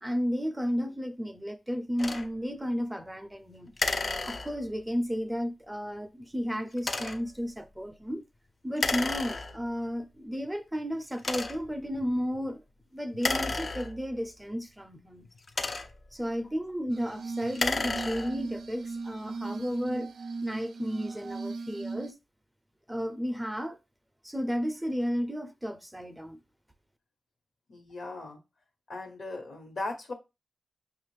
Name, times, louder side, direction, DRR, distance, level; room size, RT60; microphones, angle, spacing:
voice 1, 0.0-3.7 4.3-8.2 8.6-12.6 12.9-15.3 16.1-20.1 20.4-22.2 22.9-23.8 24.2-26.4, equal, 10° right, 0.5 m, -33 dB
sound 1, 2.0-2.3 3.8-4.8 6.8-7.3 8.8-9.8 10.5-10.6 11.2-11.8 13.1-14.3 15.2-16.1 17.4-18.5, left 3 dB, 50° left, 0.5 m, -32 dB
Glass, 16.9-22.1, right 4 dB, 80° right, 0.3 m, -38 dB
voice 2, 27.7-28.4 28.9-30.1, left 2 dB, 70° left, 1.2 m, -38 dB
5.2 x 2.4 x 3.2 m
cardioid pair, 55°, 0 cm